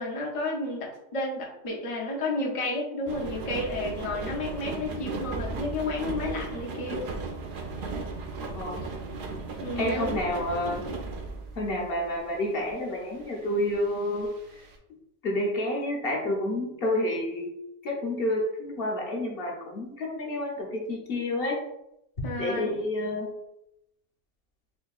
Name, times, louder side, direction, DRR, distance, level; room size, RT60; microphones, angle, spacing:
voice 1, 0.0-7.0 9.6-10.1 22.2-22.8, left 2 dB, 35° left, -3 dB, 0.5 m, -31 dB
sound 1, 3.1-12.2 12.7-14.8, right 3 dB, 60° right, 0.6 m, -36 dB
voice 2, 9.8-10.9 11.5-14.6 15.2-17.5 17.8-21.6 22.4-23.3, left 1 dB, 55° left, -1 dB, 1.0 m, -29 dB
4.5 x 2.7 x 2.3 m, 0.83 s
omnidirectional pair, 1.3 m